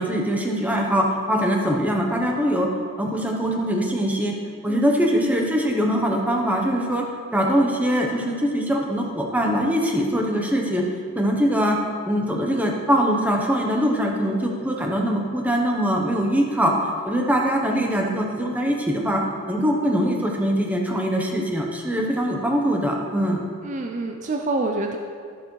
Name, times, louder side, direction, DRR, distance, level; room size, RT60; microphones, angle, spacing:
voice 1, 0.0-2.7 3.0-4.4 4.6-7.0 7.3-10.9 11.1-11.8 12.1-23.4, equal, 5° right, 0 dB, 0.8 m, -22 dB
voice 2, 23.6-25.0, right 2 dB, 35° right, 3 dB, 0.4 m, -27 dB
12.0 x 6.8 x 3.1 m, 2.2 s
head